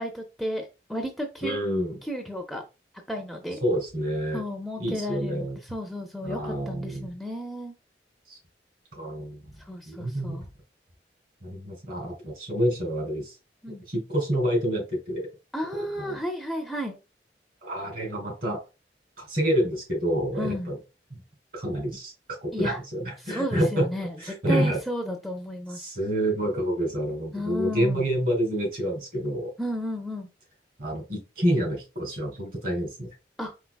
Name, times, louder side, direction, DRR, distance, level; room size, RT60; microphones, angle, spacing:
voice 1, 0.0-1.6 2.0-2.6 3.1-3.6 4.3-7.7 9.6-10.5 13.6-13.9 15.5-17.0 20.4-20.7 22.5-22.8 23.2-24.2 24.5-25.8 27.3-28.0 29.6-30.3 33.4-33.5, equal, ahead, 2 dB, 0.5 m, -33 dB
voice 2, 1.4-2.0 3.6-4.4 4.8-5.6 6.2-7.1 8.3-8.4 9.0-9.4 9.9-10.4 11.4-13.3 13.9-15.3 16.0-16.2 17.6-18.6 19.2-20.8 21.1-21.2 21.5-22.1 22.4-23.9 24.2-24.8 25.7-29.5 30.8-33.1, equal, 55° right, 1 dB, 2.4 m, -28 dB
4.5 x 4.3 x 2.3 m, 0.28 s
head